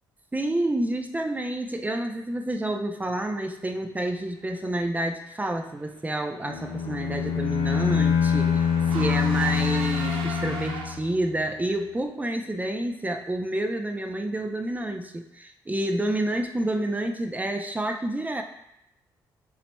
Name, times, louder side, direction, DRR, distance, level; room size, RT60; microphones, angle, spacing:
voice 1, 0.3-18.4, right 1 dB, 15° right, 5 dB, 0.6 m, -29 dB
Car / Engine, 6.2-11.3, right 3 dB, 75° right, 0.6 m, -38 dB
Bowed string instrument, 6.4-11.2, left 7 dB, 75° left, 0.5 m, -25 dB
6.9 x 3.0 x 2.2 m, 0.82 s
hypercardioid pair, 50°, 9 cm